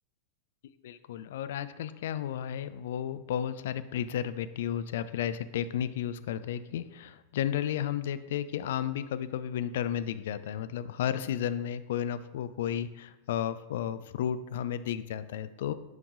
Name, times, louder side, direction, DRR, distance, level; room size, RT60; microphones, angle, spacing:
voice 1, 0.8-15.7, left 10 dB, 55° left, 13 dB, 0.3 m, -33 dB
9.3 x 5.3 x 2.4 m, 1.1 s
figure-of-eight pair, 90°, 0 cm